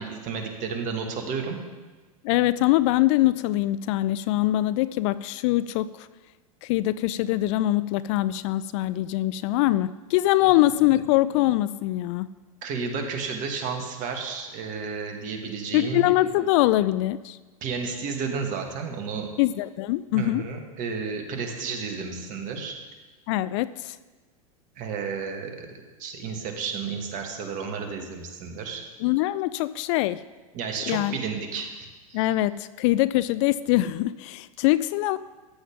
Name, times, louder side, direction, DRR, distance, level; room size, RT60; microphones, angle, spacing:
voice 1, 0.0-1.6 10.4-10.6 12.6-16.5 17.6-19.3 20.1-22.8 24.8-25.7 26.0-28.8 30.5-32.3, right 5 dB, 45° right, 2.1 m, -32 dB
voice 2, 2.2-6.1 6.6-12.3 15.7-17.4 19.4-20.4 23.3-24.0 29.0-30.2 30.9-31.2 32.1-35.2, left 16 dB, 55° left, 0.4 m, -23 dB
14.0 x 9.0 x 3.7 m
hypercardioid pair, 90°, 19 cm